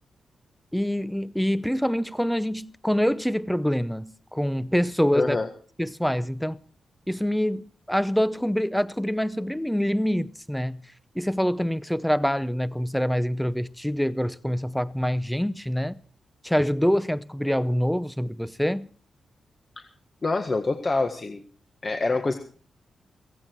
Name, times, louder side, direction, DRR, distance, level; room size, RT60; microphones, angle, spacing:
voice 1, 0.7-5.4 5.8-6.6 7.1-10.8 11.1-16.0 16.4-18.9, equal, ahead, 0.7 m, -25 dB
voice 2, 5.1-5.5 19.8-19.9 20.2-21.4 21.8-22.3, left 3 dB, 30° left, 1.6 m, -26 dB
16.5 x 16.5 x 4.6 m
wide cardioid pair, 125°, 0 cm